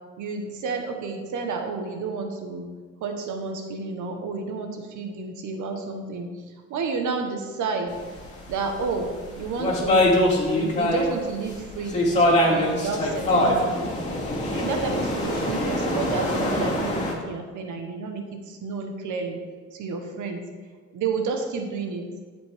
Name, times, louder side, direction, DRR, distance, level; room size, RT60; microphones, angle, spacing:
voice 1, 0.2-2.7 3.0-6.4 6.7-8.0 8.5-9.1 9.3-10.1 10.5-14.0 14.4-19.4 19.7-20.5 20.9-22.1, right 4 dB, 80° right, 5 dB, 1.3 m, -31 dB
sound 1, 8.2-11.1 11.5-17.1, left 1 dB, 25° left, 2.5 m, -23 dB
8.8 x 7.6 x 3.6 m, 1.5 s
cardioid pair, 90°, 30 cm